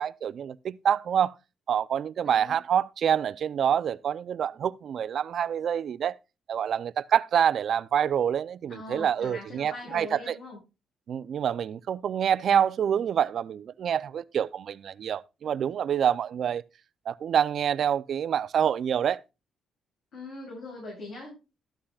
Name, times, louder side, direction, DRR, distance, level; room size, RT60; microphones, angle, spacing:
voice 1, 0.0-1.3 1.7-6.1 6.5-10.1 11.1-16.6 17.1-19.2, right 8 dB, 60° right, 0.5 m, -26 dB
voice 2, 2.2-2.6 8.7-10.6 20.1-21.3, left 2 dB, 70° left, 7.5 m, -41 dB
12.5 x 11.5 x 2.4 m
cardioid pair, 90°, 0 cm